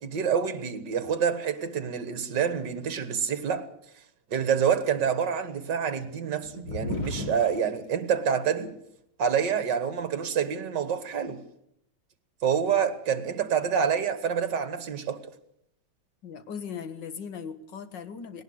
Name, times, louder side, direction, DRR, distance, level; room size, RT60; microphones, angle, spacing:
voice 1, 0.0-3.7 4.3-8.7 9.2-11.4 12.4-15.2, right 7 dB, 65° right, 2.1 m, -27 dB
sound 1, 6.4-7.5 8.7-8.8 9.5-10.0, left 2 dB, 40° left, 4.5 m, -34 dB
voice 2, 16.2-18.4, left 6 dB, 65° left, 2.1 m, -38 dB
19.0 x 18.5 x 8.0 m
omnidirectional pair, 2.1 m